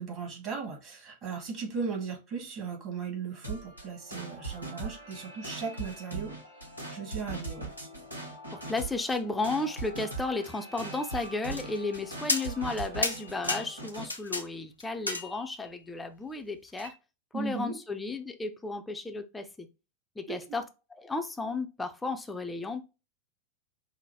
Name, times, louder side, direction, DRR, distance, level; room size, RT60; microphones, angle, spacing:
voice 1, 0.0-6.3 6.9-7.7 17.3-17.8 20.3-20.4, right 5 dB, 35° right, 1.8 m, -37 dB
sound 1, 3.4-14.1, right 3 dB, 80° right, 1.1 m, -40 dB
voice 2, 8.5-16.9 17.3-19.7 20.2-22.8, left 3 dB, 10° left, 0.6 m, -34 dB
sound 2, 11.5-12.0 12.3-12.8 13.0-14.5 14.8-15.7 16.8-16.9, left 2 dB, 85° left, 0.7 m, -32 dB
5.6 x 2.1 x 3.5 m
figure-of-eight pair, 90°, 0 cm